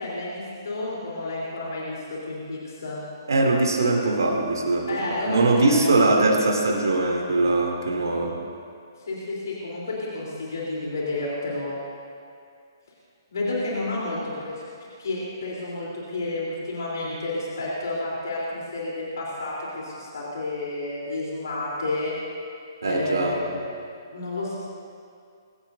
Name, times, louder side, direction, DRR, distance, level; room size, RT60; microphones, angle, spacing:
voice 1, 0.0-3.0 4.9-5.9 6.1-6.3 9.0-11.8 13.3-14.6 15.0-22.1 22.8-23.6 24.1-24.6, left 2 dB, 65° left, -5 dB, 3.6 m, -30 dB
voice 2, 3.3-8.4 22.8-23.4, right 2 dB, 70° right, 1 dB, 2.9 m, -21 dB
22.5 x 16.5 x 2.7 m, 2.3 s
figure-of-eight pair, 130°, 2 cm